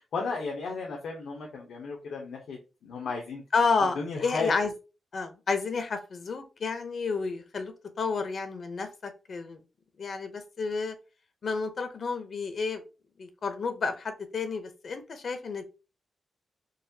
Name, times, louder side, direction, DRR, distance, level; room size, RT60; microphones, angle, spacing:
voice 1, 0.0-3.4 3.9-4.5, left 4 dB, 85° left, -2 dB, 0.7 m, -34 dB
voice 2, 3.5-4.7 5.1-9.6 10.0-11.0 11.4-12.8 13.2-15.6, left 4 dB, 50° left, 8 dB, 0.6 m, -30 dB
4.0 x 2.3 x 2.7 m, 0.31 s
wide cardioid pair, 140°, 0 cm